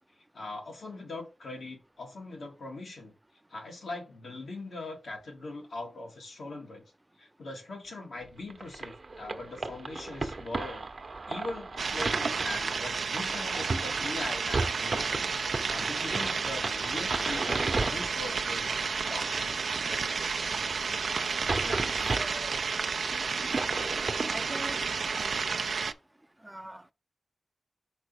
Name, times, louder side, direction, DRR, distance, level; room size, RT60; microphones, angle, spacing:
voice 1, 0.3-3.1 3.5-6.8 7.2-10.9 11.3-15.3 15.7-18.8 19.1-20.0, left 2 dB, 85° left, 1.8 m, -41 dB
sound 1, 8.5-25.2, right 3 dB, 60° right, 0.8 m, -35 dB
sound 2, 11.8-25.9, right 5 dB, 80° right, 0.4 m, -31 dB
voice 2, 21.6-22.6 24.3-24.8 26.4-26.9, right 1 dB, 20° right, 0.5 m, -42 dB
5.1 x 4.2 x 5.0 m
cardioid pair, 45°, 0 cm